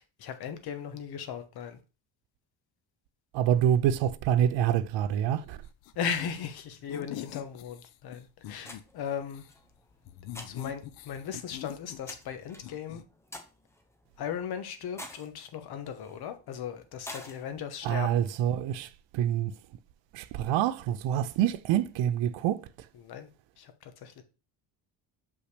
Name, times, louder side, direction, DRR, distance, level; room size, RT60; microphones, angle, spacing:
voice 1, 0.0-1.8 5.9-9.4 10.4-13.0 14.2-18.2 23.0-23.3 23.6-24.2, left 7 dB, 55° left, 1.2 m, -37 dB
voice 2, 3.3-5.6 17.8-19.6 20.1-22.9, right 10 dB, 80° right, 0.6 m, -27 dB
sound 1, 5.8-6.5 6.9-8.8 9.2-9.5 10.1-12.3 12.6-13.0, left 12 dB, 85° left, 0.7 m, -43 dB
sound 2, 8.6-18.4, left 1 dB, 5° left, 0.7 m, -50 dB
6.5 x 5.5 x 3.3 m
cardioid pair, 170°, 45 cm